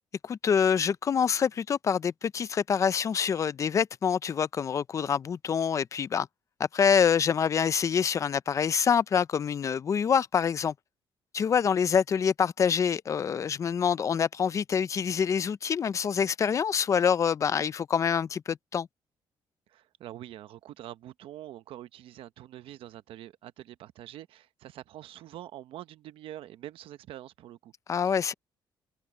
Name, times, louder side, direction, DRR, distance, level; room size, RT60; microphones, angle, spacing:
voice 1, 0.2-6.3 6.7-10.7 11.3-18.9 27.9-28.3, left 7 dB, 35° left, 0.5 m, -26 dB
voice 2, 19.7-27.7 28.1-28.3, right 13 dB, 85° right, 0.9 m, -45 dB
cardioid pair, 155°, 9 cm